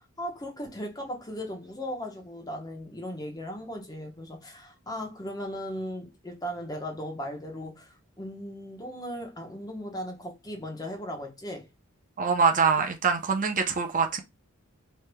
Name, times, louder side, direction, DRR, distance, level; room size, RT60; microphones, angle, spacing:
voice 1, 0.0-11.7, equal, 20° left, 1.0 m, -37 dB
voice 2, 12.2-14.2, right 5 dB, 40° right, 0.6 m, -24 dB
4.6 x 3.3 x 2.2 m
head